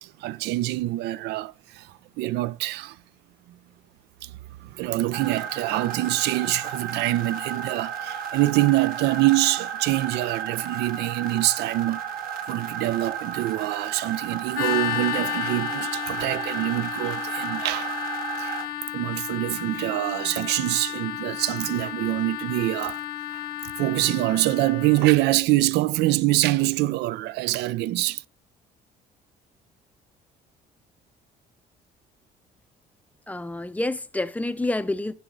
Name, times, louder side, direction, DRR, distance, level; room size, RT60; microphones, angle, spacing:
voice 1, 0.0-3.0 4.2-12.0 12.5-17.9 18.4-23.0 23.3-28.2, right 17 dB, 80° right, 0.4 m, -25 dB
sound 1, 5.1-18.7, right 7 dB, 60° right, 1.2 m, -33 dB
sound 2, 14.5-25.2, left 12 dB, 65° left, 0.7 m, -32 dB
voice 2, 33.3-35.1, left 2 dB, 10° left, 0.5 m, -28 dB
10.5 x 4.0 x 6.1 m
cardioid pair, 110°, 17 cm